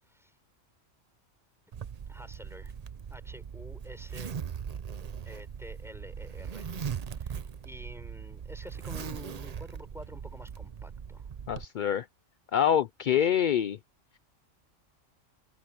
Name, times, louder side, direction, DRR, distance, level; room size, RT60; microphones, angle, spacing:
voice 1, 0.1-0.4 2.1-2.7 3.1-4.3 5.3-6.7 7.1-11.3 13.1-13.3, equal, ahead, 5.1 m, -49 dB
Zipper (clothing), 1.7-11.7, right 7 dB, 45° right, 0.5 m, -40 dB
voice 2, 11.5-12.1 12.5-13.8, left 9 dB, 60° left, 0.5 m, -25 dB
omnidirectional pair, 1.3 m